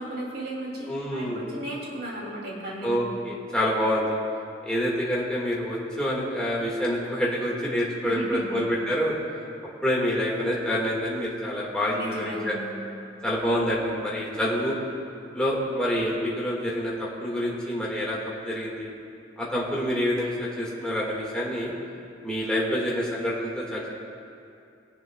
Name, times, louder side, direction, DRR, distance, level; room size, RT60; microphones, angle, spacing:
voice 1, 0.0-2.9 8.0-8.6 11.9-12.7, right 1 dB, 60° right, -3 dB, 2.7 m, -35 dB
voice 2, 0.9-1.5 2.8-4.1 4.6-9.1 9.8-12.5 13.2-14.8 15.3-18.2 18.4-18.9 19.4-21.7 22.2-23.9, equal, 5° left, -6 dB, 1.8 m, -27 dB
21.5 x 10.5 x 2.3 m, 2.6 s
head